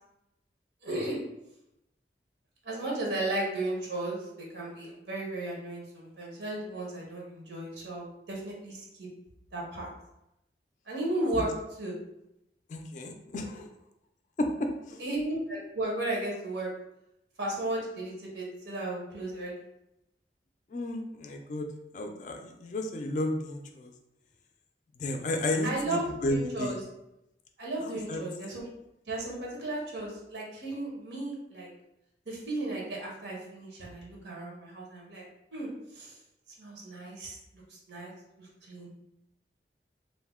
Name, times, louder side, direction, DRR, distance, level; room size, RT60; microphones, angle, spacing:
voice 1, 0.8-1.2 2.6-9.1 9.5-9.9 10.9-11.9 15.0-16.7 17.4-19.6 25.6-26.8 27.6-28.7 29.1-31.7 32.3-35.3 35.5-36.2 36.6-37.4 37.7-38.1 38.4-38.9, right 2 dB, 90° right, -3 dB, 0.8 m, -35 dB
voice 2, 12.7-13.7 14.4-14.5 14.9-15.0 20.7-21.7 21.9-23.9 25.0-26.7 27.8-28.2, left 1 dB, 45° left, 4 dB, 0.3 m, -32 dB
2.6 x 2.1 x 3.5 m, 0.86 s
head